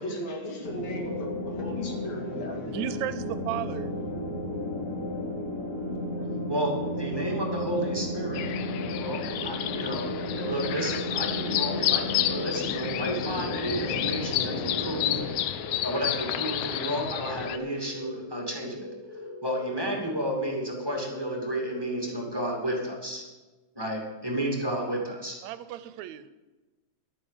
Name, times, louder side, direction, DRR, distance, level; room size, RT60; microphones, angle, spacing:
voice 1, 0.0-2.8, equal, 70° left, 3.2 m, -37 dB
sound 1, 0.6-15.3, left 1 dB, 10° left, 1.6 m, -33 dB
voice 2, 2.7-3.9 25.4-26.3, right 12 dB, 80° right, 1.9 m, -34 dB
voice 3, 6.5-8.4 9.0-10.1 10.4-15.5 15.8-18.9 19.4-23.2 23.7-25.4, right 1 dB, 10° right, 2.1 m, -32 dB
sound 2, 8.3-17.6, left 12 dB, 90° left, 2.0 m, -31 dB
sound 3, 9.7-22.8, left 2 dB, 45° left, 6.0 m, -42 dB
12.0 x 9.1 x 7.4 m
omnidirectional pair, 3.3 m